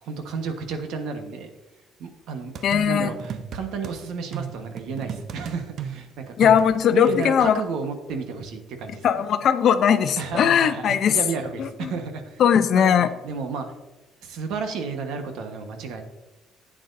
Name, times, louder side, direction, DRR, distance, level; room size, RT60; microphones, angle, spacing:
voice 1, 0.0-1.5 2.0-2.5 2.9-6.6 6.9-9.2 10.2-12.4 12.7-13.7 14.2-16.0, right 5 dB, 75° right, 6 dB, 1.3 m, -32 dB
sound 1, 2.5-4.0 4.3-7.5, right 8 dB, 55° right, 0.7 m, -35 dB
voice 2, 2.6-3.1 6.4-7.6 9.0-11.2 11.6-11.9 12.4-13.1, left 8 dB, 55° left, 11 dB, 0.6 m, -19 dB
11.0 x 8.9 x 2.7 m, 1.1 s
cardioid pair, 120°, 0 cm